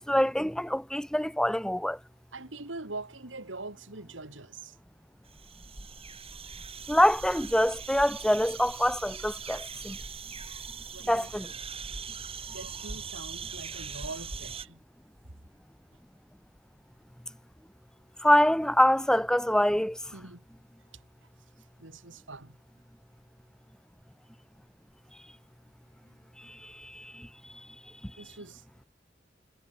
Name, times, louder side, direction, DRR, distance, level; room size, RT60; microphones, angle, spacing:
voice 1, 0.0-2.0 6.9-10.0 11.1-11.5 18.2-20.0 26.4-27.3 28.0-28.1, equal, 5° left, 1.1 m, -25 dB
voice 2, 2.3-4.8 10.5-10.6 10.9-11.3 11.8-12.0 12.5-14.8 20.1-20.4 20.9-21.0 21.8-22.6 26.0-26.1 28.2-28.6, right 3 dB, 90° right, 3.3 m, -43 dB
sound 1, 5.3-14.6, right 5 dB, 30° right, 2.6 m, -41 dB
head